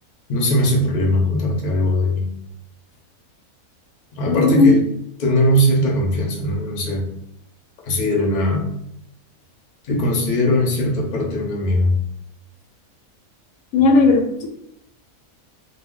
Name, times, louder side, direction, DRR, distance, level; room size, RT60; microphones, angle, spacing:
voice 1, 0.3-2.3 4.1-4.8 5.2-7.1 7.9-8.7 9.8-12.0, left 1 dB, 50° left, -2 dB, 0.6 m, -20 dB
voice 2, 4.3-4.7 13.7-14.5, left 3 dB, 75° left, 2 dB, 1.0 m, -15 dB
2.3 x 2.1 x 3.6 m, 0.74 s
omnidirectional pair, 1.5 m